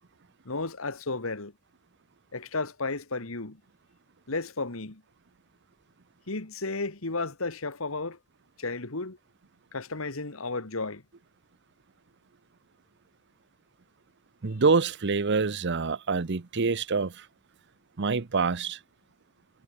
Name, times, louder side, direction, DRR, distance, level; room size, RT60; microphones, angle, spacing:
voice 1, 0.5-1.5 2.3-3.6 4.3-5.0 6.3-8.2 8.6-9.2 9.7-11.0, left 3 dB, 65° left, 1.9 m, -33 dB
voice 2, 14.4-17.3 18.0-18.8, right 4 dB, 55° right, 0.8 m, -26 dB
head